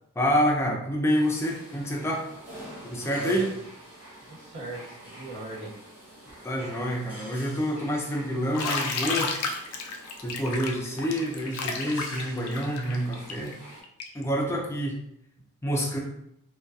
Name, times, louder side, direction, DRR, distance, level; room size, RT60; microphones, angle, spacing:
voice 1, 0.2-2.3 2.8-3.5 6.4-9.3 10.2-13.6 14.1-14.9 15.6-16.0, equal, 10° left, -1 dB, 0.4 m, -27 dB
sound 1, 1.1-13.8, right 1 dB, 10° right, 0.9 m, -47 dB
voice 2, 2.9-3.5 4.2-5.7, right 2 dB, 60° right, -16 dB, 1.1 m, -39 dB
Bathtub (filling or washing), 8.5-14.2, left 4 dB, 85° left, 0.4 m, -32 dB
2.6 x 2.3 x 2.3 m, 0.77 s
head